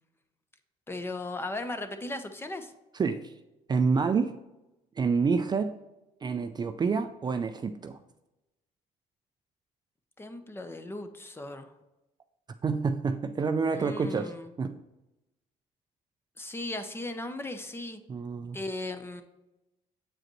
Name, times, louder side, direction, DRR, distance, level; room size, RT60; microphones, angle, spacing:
voice 1, 0.9-2.7 10.2-11.7 13.7-14.5 16.4-18.0 18.5-19.2, left 2 dB, 15° left, 8 dB, 0.7 m, -37 dB
voice 2, 2.9-3.3 3.7-4.3 5.0-5.7 6.2-8.0 12.6-14.3 14.6-14.8 18.1-18.6, right 5 dB, 30° right, 8 dB, 0.4 m, -28 dB
7.6 x 4.9 x 3.0 m, 0.97 s
cardioid pair, 95°, 14 cm